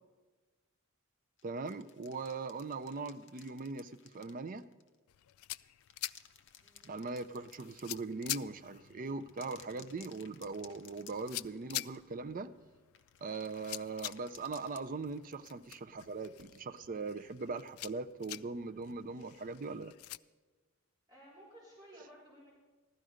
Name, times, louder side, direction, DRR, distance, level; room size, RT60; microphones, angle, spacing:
sound 1, 1.4-5.0 5.6-8.5 9.2-11.7 11.9-12.1 12.9-15.3, left 9 dB, 55° left, 0.7 m, -59 dB
voice 1, 1.4-4.7 6.8-12.5 13.2-19.9, right 3 dB, 40° right, 11 dB, 0.4 m, -40 dB
sound 2, 5.1-20.2, left 16 dB, 80° left, 0.3 m, -47 dB
voice 2, 6.6-7.0 21.1-22.5, right 1 dB, 20° right, -7 dB, 3.6 m, -56 dB
15.5 x 12.0 x 5.0 m, 1.3 s
head